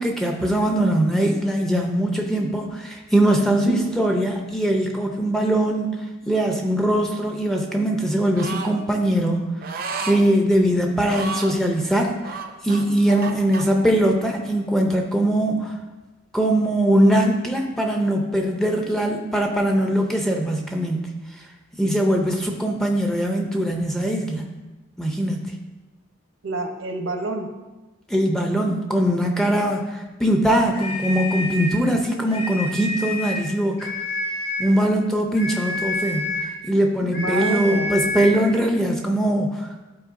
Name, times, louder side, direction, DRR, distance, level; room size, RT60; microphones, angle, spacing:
voice 1, 0.0-5.9 6.2-9.4 10.0-12.4 12.6-15.7 16.3-21.1 21.8-24.4 25.0-25.5 28.1-33.9 34.6-36.3 36.6-39.8, right 1 dB, ahead, 1 dB, 0.5 m, -21 dB
voice 2, 3.6-4.0 13.1-13.4 26.4-27.5 37.0-37.9, right 2 dB, 70° right, 3 dB, 0.9 m, -28 dB
sound 1, 8.4-8.7 9.6-10.2 11.0-11.6 12.2-13.6, right 4 dB, 45° right, 0.5 m, -32 dB
sound 2, 30.7-31.8 32.3-33.5 33.8-34.8 35.4-36.6 37.1-38.5, left 1 dB, 65° left, 2.3 m, -28 dB
11.5 x 4.4 x 2.6 m, 1.1 s
head